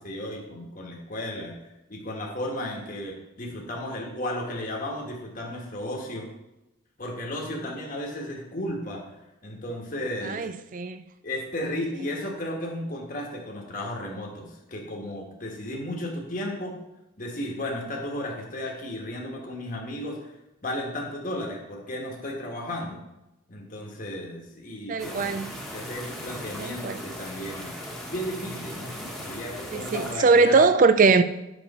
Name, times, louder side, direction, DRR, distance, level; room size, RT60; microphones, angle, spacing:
voice 1, 0.0-6.3 7.0-9.0 9.4-10.5 11.2-16.8 17.2-20.3 20.6-23.0 23.5-27.7 28.0-29.0 29.3-30.7, left 1 dB, 40° left, 1.4 m, -34 dB
voice 2, 10.2-11.0 24.9-25.5 26.6-27.0 29.7-31.2, right 4 dB, 40° right, 0.4 m, -21 dB
sound 1, 25.0-30.1, equal, ahead, 1.3 m, -38 dB
8.2 x 6.1 x 4.2 m
head